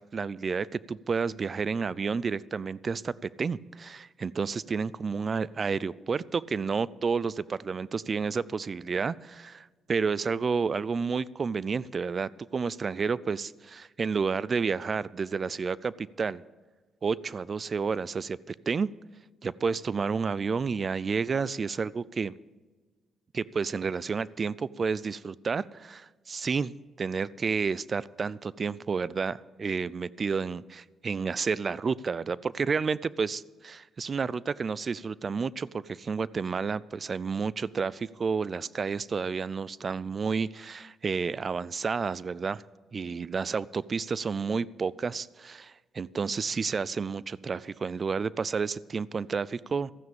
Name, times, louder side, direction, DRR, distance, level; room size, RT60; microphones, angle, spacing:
voice 1, 0.0-16.4 17.0-18.9 19.4-22.3 23.3-26.7 27.0-42.6 42.9-49.9, right 5 dB, 40° right, 21 dB, 0.4 m, -30 dB
13.5 x 9.5 x 7.1 m, 1.3 s
cardioid pair, 90°, 0 cm